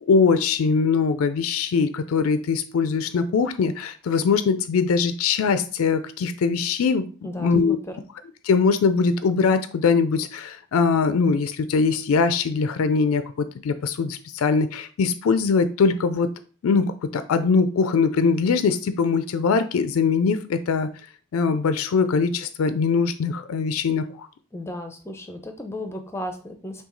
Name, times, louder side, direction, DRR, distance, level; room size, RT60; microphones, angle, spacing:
voice 1, 0.1-7.1 7.4-7.8 8.4-16.3 16.6-20.9 21.3-24.3, left 5 dB, 90° left, 0.4 m, -22 dB
voice 2, 7.2-7.8 24.5-26.8, left 1 dB, 10° left, 0.5 m, -34 dB
5.7 x 2.3 x 3.8 m
head